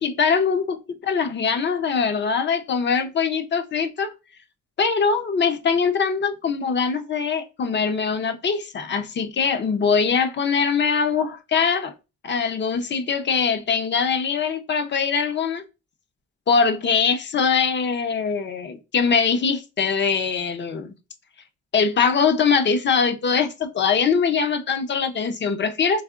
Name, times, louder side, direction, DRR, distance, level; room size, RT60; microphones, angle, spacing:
voice 1, 0.0-4.1 4.8-11.9 12.2-15.6 16.5-20.9 21.7-26.0, left 5 dB, 40° left, 0.6 m, -22 dB
4.8 x 3.5 x 2.4 m
wide cardioid pair, 160°, 29 cm